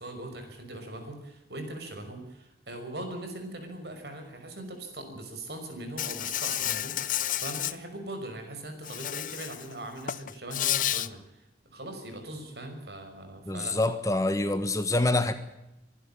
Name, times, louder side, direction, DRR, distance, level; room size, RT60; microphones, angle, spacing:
voice 1, 0.0-13.8, right 1 dB, 70° right, 6 dB, 5.7 m, -40 dB
Insect, 6.0-7.7 8.8-9.7 10.0-11.1, left 12 dB, 50° left, 0.7 m, -30 dB
voice 2, 13.5-15.3, left 2 dB, 20° left, 10 dB, 1.4 m, -26 dB
24.5 x 12.0 x 8.8 m, 0.92 s
head